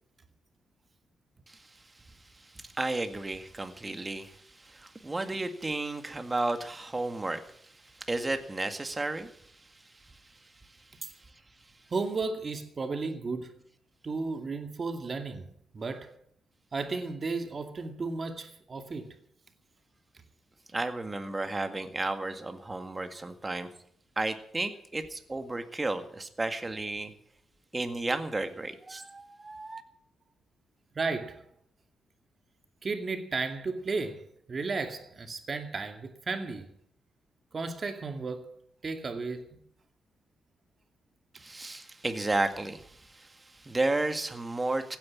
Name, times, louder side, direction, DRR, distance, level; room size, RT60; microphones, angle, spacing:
voice 1, 1.5-2.0 2.3-10.3 20.7-23.7 24.2-27.1 27.7-29.8 41.3-45.0, right 2 dB, 20° right, 1.9 m, -33 dB
voice 2, 11.9-13.5 14.0-16.1 16.7-19.2 30.9-31.5 32.8-36.7 37.5-38.5 38.8-39.6, right 4 dB, 40° right, 2.3 m, -34 dB
16.0 x 9.8 x 8.8 m
cardioid pair, 100°, 0 cm